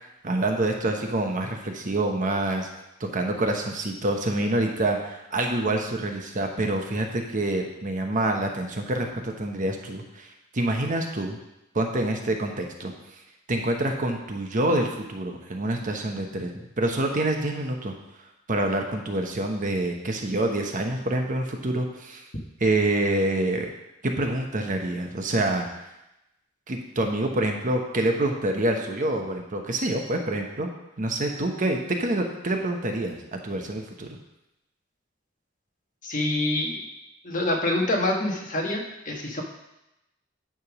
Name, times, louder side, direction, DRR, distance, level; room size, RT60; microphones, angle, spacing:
voice 1, 0.2-2.7 3.0-11.4 11.7-13.2 13.5-17.9 18.5-22.2 22.6-23.7 24.0-25.9 26.7-30.7 31.0-34.2, right 1 dB, 40° right, 3 dB, 1.0 m, -27 dB
voice 2, 36.0-36.9 37.2-39.4, left 1 dB, 40° left, 0 dB, 1.3 m, -26 dB
9.8 x 3.6 x 6.0 m, 0.90 s
head